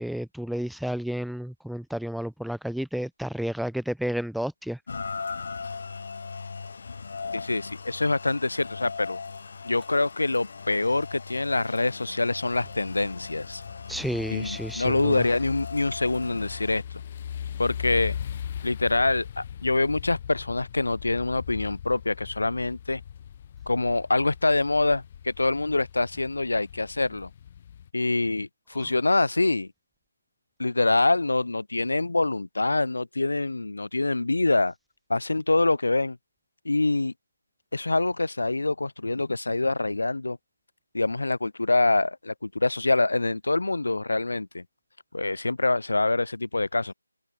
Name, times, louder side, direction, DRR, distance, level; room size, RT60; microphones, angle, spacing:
voice 1, 0.0-4.8 13.9-15.2 28.8-28.9, equal, ahead, 0.4 m, -31 dB
Rain, 4.9-16.8, left 5 dB, 35° left, 0.9 m, -39 dB
voice 2, 7.3-9.2 9.6-13.6 14.3-16.8 17.6-18.2 18.6-23.0 23.7-27.3 27.9-29.7 30.6-34.7 35.1-36.2 36.6-37.1 37.7-40.4 40.9-44.6 45.1-46.9, left 2 dB, 70° left, 0.7 m, -25 dB
sound 1, 12.5-27.9, left 9 dB, 20° left, 2.0 m, -40 dB
figure-of-eight pair, 175°, 0 cm